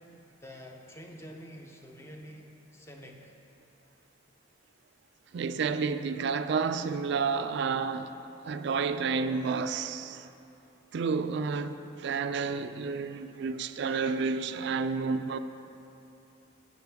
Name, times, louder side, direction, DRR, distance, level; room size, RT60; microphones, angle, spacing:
voice 1, 0.4-3.3, equal, 15° left, 0.7 m, -47 dB
voice 2, 5.3-8.1 8.4-10.3 10.9-15.4, right 5 dB, 60° right, 0.3 m, -30 dB
11.5 x 8.2 x 3.5 m
head